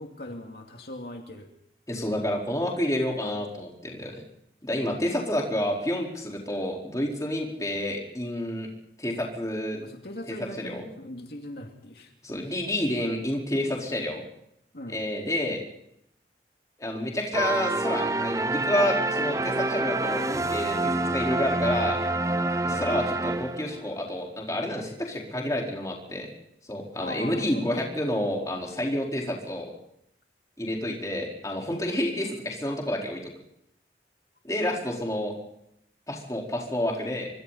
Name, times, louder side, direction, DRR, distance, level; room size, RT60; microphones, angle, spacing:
voice 1, 0.0-1.5 9.8-12.1 14.7-15.0 22.7-23.0 27.0-27.6, left 1 dB, 65° left, 2 dB, 2.5 m, -40 dB
voice 2, 1.9-4.2 4.6-8.7 9.0-9.8 10.4-10.9 12.2-14.2 14.9-15.6 16.8-22.0 22.6-26.3 26.7-29.7 30.6-33.2 34.4-35.3 36.1-37.3, left 1 dB, 20° left, -1 dB, 4.5 m, -29 dB
sound 1, 17.3-23.9, right 2 dB, 20° right, 0.7 m, -27 dB
25.0 x 24.5 x 4.3 m, 0.76 s
head